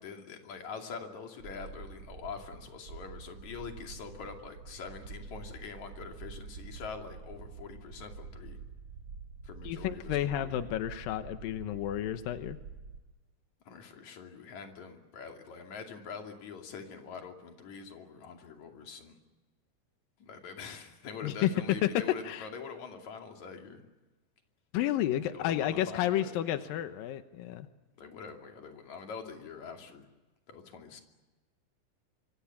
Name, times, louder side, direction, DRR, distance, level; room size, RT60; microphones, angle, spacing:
voice 1, 0.0-8.6 9.4-10.6 13.6-19.1 20.2-23.8 25.3-26.3 26.6-26.8 28.0-30.1 30.5-31.0, left 5 dB, 45° left, 3 dB, 3.4 m, -44 dB
sound 1, 1.4-13.0, right 5 dB, 80° right, 1.1 m, -47 dB
voice 2, 9.6-12.6 21.2-22.5 24.7-27.7, left 12 dB, 85° left, 10 dB, 2.0 m, -31 dB
25.5 x 25.5 x 7.2 m, 1.2 s
omnidirectional pair, 5.5 m